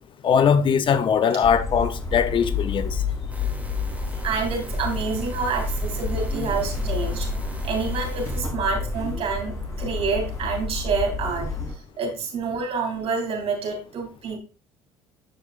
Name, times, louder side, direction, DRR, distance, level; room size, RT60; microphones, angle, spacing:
voice 1, 0.2-3.0, left 7 dB, 45° left, 0.7 m, -20 dB
sound 1, 1.4-11.7, left 3 dB, 30° left, 3.5 m, -29 dB
sound 2, 3.3-8.4, right 1 dB, 10° right, 2.6 m, -42 dB
voice 2, 4.2-7.3 7.6-11.5 12.0-14.4, right 5 dB, 60° right, 3.1 m, -28 dB
13.0 x 5.0 x 2.5 m
supercardioid pair, 70°, 11 cm